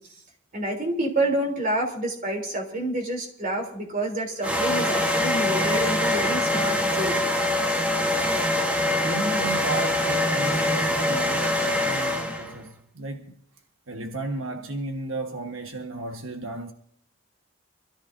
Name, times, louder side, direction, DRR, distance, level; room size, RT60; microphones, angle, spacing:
voice 1, 0.5-7.2, right 1 dB, 45° right, 3.3 m, -28 dB
sound 1, 4.4-12.5, left 1 dB, 5° right, 1.2 m, -24 dB
voice 2, 9.0-13.3 13.9-16.7, right 2 dB, 90° right, 1.4 m, -33 dB
25.5 x 14.0 x 2.7 m
head